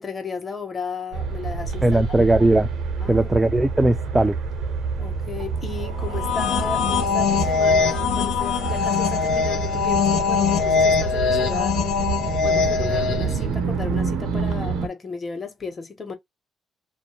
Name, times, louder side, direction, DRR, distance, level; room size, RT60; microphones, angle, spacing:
voice 1, 0.0-2.0 3.0-3.6 5.0-12.1 12.4-16.1, left 5 dB, 35° left, 1.1 m, -34 dB
sound 1, 1.1-14.9, right 5 dB, 80° right, 0.8 m, -28 dB
voice 2, 1.8-2.7 3.1-4.4, right 2 dB, 15° right, 0.4 m, -18 dB
sound 2, 6.0-13.4, left 5 dB, 85° left, 0.8 m, -22 dB
2.6 x 2.1 x 3.0 m
cardioid pair, 90°, 0 cm